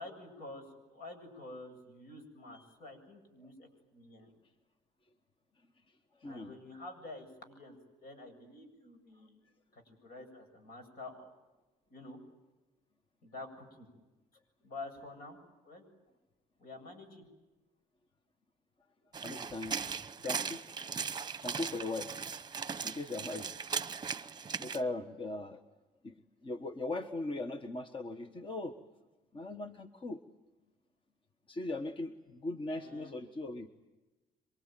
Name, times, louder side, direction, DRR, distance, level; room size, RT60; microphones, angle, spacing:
voice 1, 0.0-4.3 6.3-9.4 9.7-11.3 11.9-12.2 13.2-13.9 14.6-15.4 15.6-15.8 16.6-17.3 32.7-33.1, left 2 dB, 65° left, 7 dB, 7.9 m, -49 dB
voice 2, 6.2-6.5 19.2-19.8 20.2-20.7 21.4-22.1 22.8-23.5 24.6-25.6 26.0-26.1 26.4-28.8 29.3-30.2 31.5-33.7, left 2 dB, 30° left, 7 dB, 1.3 m, -39 dB
sound 1, 19.1-24.8, right 6 dB, 25° right, 1.0 m, -38 dB
27.5 x 23.5 x 9.2 m, 1.1 s
cardioid pair, 110°, 17 cm